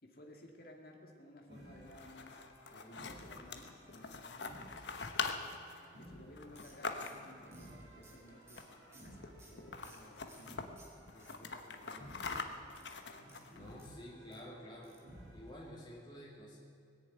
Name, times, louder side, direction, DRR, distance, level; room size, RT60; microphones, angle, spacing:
voice 1, 0.0-5.0 6.0-8.7 9.0-10.7 11.1-12.6, left 1 dB, 55° left, 1 dB, 2.1 m, -57 dB
sound 1, 1.5-15.8, equal, 70° right, 5.2 m, -57 dB
sound 2, 1.8-7.5 8.5-8.9 9.2-9.3 9.6-10.7 11.1-13.7, left 4 dB, 80° left, 1.0 m, -43 dB
sound 3, 6.6-10.5 10.8-11.8 12.7-14.4 14.8-15.1 15.4-15.5 15.8-15.9, right 2 dB, 15° right, 1.8 m, -62 dB
voice 2, 13.5-14.9 15.3-16.6, equal, 25° left, -5 dB, 2.5 m, -50 dB
20.0 x 7.2 x 9.1 m, 2.4 s
head